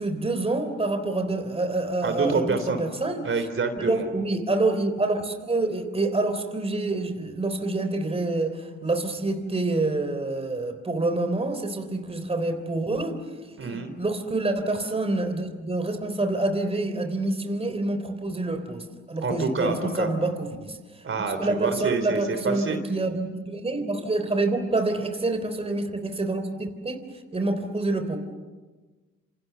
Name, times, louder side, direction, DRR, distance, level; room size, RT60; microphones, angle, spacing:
voice 1, 0.0-3.3 3.8-13.2 13.6-20.8 21.4-27.1 27.3-28.2, right 2 dB, 20° right, 7 dB, 3.6 m, -27 dB
voice 2, 2.0-2.8 3.2-4.1 13.6-13.9 19.2-20.1 21.0-22.8, right 4 dB, 45° right, 8 dB, 3.5 m, -27 dB
28.0 x 27.5 x 6.9 m, 1.3 s
cardioid pair, 90°, 30 cm